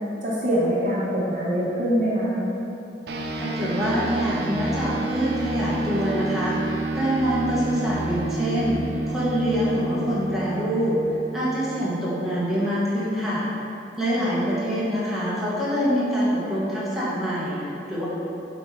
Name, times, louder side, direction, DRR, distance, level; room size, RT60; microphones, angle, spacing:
voice 1, 0.2-2.4 14.1-14.3, equal, 40° right, -7 dB, 1.1 m, -24 dB
sound 1, 3.1-12.8, right 2 dB, 60° right, 0.5 m, -30 dB
voice 2, 3.4-8.8 9.1-11.0 11.3-13.5 14.0-18.1, equal, ahead, -10 dB, 1.2 m, -25 dB
7.8 x 4.1 x 3.2 m, 2.8 s
head